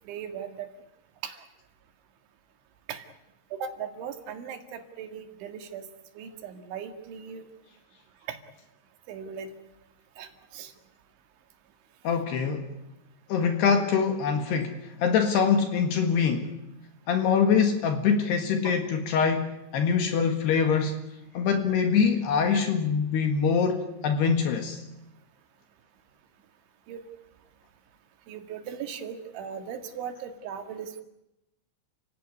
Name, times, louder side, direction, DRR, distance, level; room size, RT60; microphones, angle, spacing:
voice 1, 0.1-0.7 1.2-1.4 2.9-3.1 3.5-5.9 6.2-7.4 8.3-8.4 9.1-9.5 10.2-10.7 18.6-18.8 22.5-22.6 26.9-27.0 28.3-31.0, right 7 dB, 90° right, 6 dB, 4.4 m, -38 dB
voice 2, 12.0-12.7 13.3-16.5 17.1-21.0 21.4-24.8, left 6 dB, 65° left, 6 dB, 3.6 m, -24 dB
30.0 x 17.5 x 9.7 m, 0.91 s
omnidirectional pair, 5.2 m